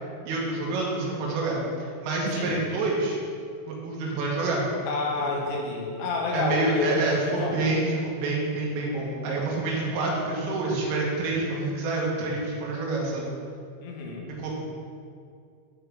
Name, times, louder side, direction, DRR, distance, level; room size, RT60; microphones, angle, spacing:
voice 1, 0.3-3.2 3.8-4.7 5.3-5.4 6.3-13.3 14.4-14.6, right 2 dB, 80° right, -3 dB, 3.9 m, -27 dB
voice 2, 4.9-7.7 13.8-14.3, left 2 dB, 80° left, -1 dB, 3.4 m, -29 dB
12.5 x 4.5 x 3.4 m, 2.3 s
omnidirectional pair, 5.8 m